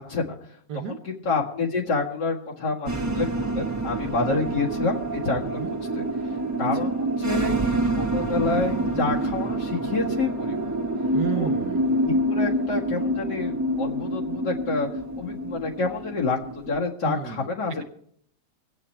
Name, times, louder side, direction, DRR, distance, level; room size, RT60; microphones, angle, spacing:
voice 1, 0.0-0.6 0.9-5.6 5.9-6.0 6.6-10.7 11.3-11.5 12.0-14.9 15.1-17.8, left 3 dB, 70° left, -2 dB, 2.5 m, -28 dB
sound 1, 2.9-16.8, right 1 dB, 10° right, 1.0 m, -27 dB
voice 2, 11.1-11.8 17.0-17.5, right 9 dB, 70° right, 6 dB, 1.2 m, -31 dB
24.5 x 8.7 x 4.4 m, 0.66 s
omnidirectional pair, 1.9 m